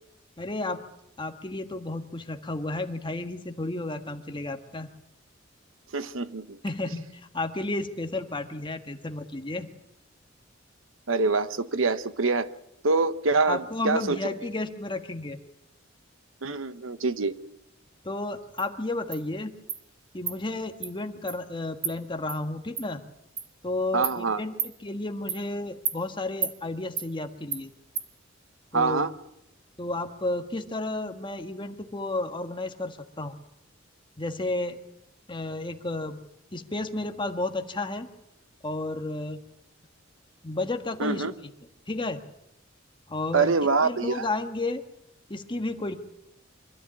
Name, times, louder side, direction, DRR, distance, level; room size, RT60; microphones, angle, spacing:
voice 1, 0.4-0.8 1.2-4.9 6.6-9.7 13.5-15.4 18.0-19.5 20.1-23.0 23.6-27.7 28.7-29.1 29.8-33.3 34.2-34.8 35.3-36.2 36.5-38.1 38.6-39.4 40.4-41.3 41.9-42.2 43.1-43.5 43.8-44.8 45.3-46.0, left 2 dB, 25° left, 6 dB, 1.5 m, -32 dB
voice 2, 5.9-6.6 11.1-12.5 12.8-14.2 16.4-17.3 23.9-24.4 28.7-29.1 41.0-41.3 43.3-44.2, right 4 dB, 85° right, 13 dB, 1.0 m, -25 dB
Insect, 18.6-18.7 19.1-19.2 19.7-19.8 20.3-20.4 20.8-20.9 21.3-21.4 21.8-21.9 22.3-22.4 22.8-22.9 23.4-23.5 24.0-24.2 24.6-24.7 25.3-25.4 25.8-26.0 26.4-26.5 27.0-27.1 27.5-27.6 27.9-28.1, right 7 dB, 30° right, 1.3 m, -31 dB
25.0 x 13.5 x 8.7 m, 0.84 s
head